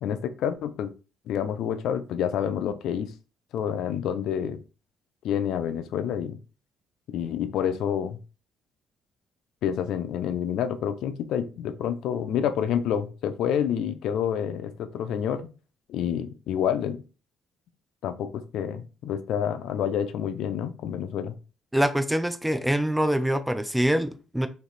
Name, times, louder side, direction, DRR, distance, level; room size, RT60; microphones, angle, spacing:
voice 1, 0.0-0.9 1.3-3.1 3.5-4.6 5.2-6.4 7.1-8.2 9.6-15.5 15.9-17.0 18.0-21.4, left 9 dB, 70° left, 0.5 m, -28 dB
voice 2, 21.7-24.5, equal, 5° right, 0.4 m, -24 dB
3.3 x 2.8 x 4.0 m
cardioid pair, 115°, 0 cm